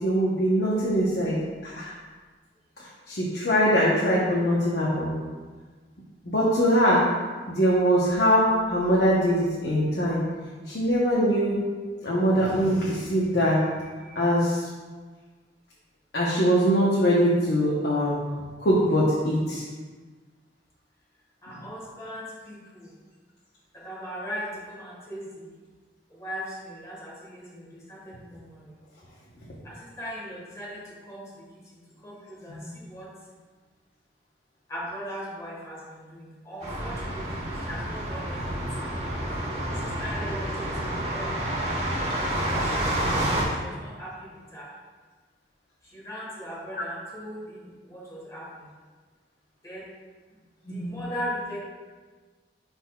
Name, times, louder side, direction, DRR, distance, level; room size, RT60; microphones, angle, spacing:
voice 1, 0.0-1.4 1.6-1.9 3.1-5.2 6.3-7.0 7.5-8.4 8.7-10.2 10.7-11.6 12.0-13.6 14.2-14.6 16.1-18.2 18.6-19.6 32.6-32.7 46.7-46.8 50.8-51.0, equal, 70° left, -6 dB, 1.0 m, -22 dB
voice 2, 21.4-22.9 23.7-25.5 26.1-28.7 29.6-31.4 32.0-33.1 34.7-38.5 38.8-38.9 39.7-41.6 42.5-44.7 45.9-48.6 49.6-49.8 50.7-51.6, equal, 20° left, -5 dB, 1.5 m, -39 dB
sound 1, 36.6-43.4, right 1 dB, 35° right, 1.3 m, -29 dB
10.0 x 4.1 x 2.3 m, 1.4 s
head